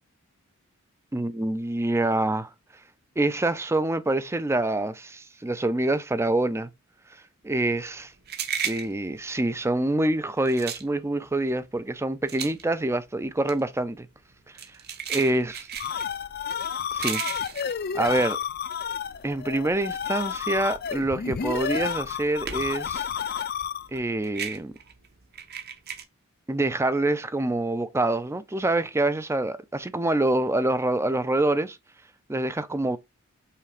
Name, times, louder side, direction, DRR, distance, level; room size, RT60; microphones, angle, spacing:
voice 1, 1.1-2.5 3.2-6.7 7.4-8.1 8.6-14.1 14.5-14.6 15.1-15.6 16.9-17.2 17.9-18.4 19.2-23.1 23.9-24.7 26.5-31.8 32.3-33.0, right 2 dB, 10° right, 0.4 m, -26 dB
sound 1, 7.7-19.1 19.5-22.9 23.2-26.0, right 8 dB, 45° right, 1.0 m, -36 dB
sound 2, 15.5-24.0, left 7 dB, 45° left, 0.5 m, -31 dB
5.8 x 4.0 x 4.9 m
head